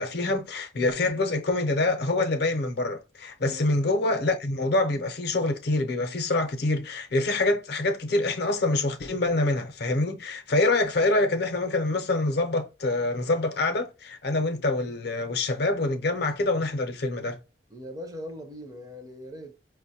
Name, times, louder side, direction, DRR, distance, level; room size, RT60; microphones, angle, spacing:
voice 1, 0.0-17.4, left 2 dB, 55° left, 0.5 m, -26 dB
voice 2, 3.4-3.9 14.5-14.6 17.7-19.5, equal, 20° right, 0.4 m, -41 dB
5.0 x 2.1 x 2.7 m
head